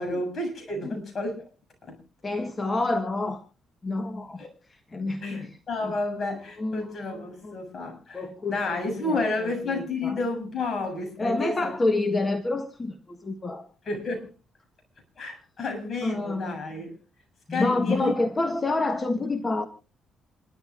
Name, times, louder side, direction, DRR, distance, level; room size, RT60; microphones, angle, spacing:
voice 1, 0.0-1.5 1.9-2.0 4.4-4.5 5.2-8.2 8.5-11.7 13.9-14.3 15.2-16.9 17.5-18.1, left 2 dB, 45° left, 3 dB, 7.5 m, -31 dB
voice 2, 2.2-3.4 3.8-4.4 4.7-5.6 5.8-5.9 6.6-7.5 8.1-10.2 11.2-13.7 16.0-16.5 17.5-19.7, left 2 dB, 25° left, 8 dB, 1.4 m, -28 dB
27.5 x 12.5 x 2.5 m, 0.33 s
cardioid pair, 90°, 0 cm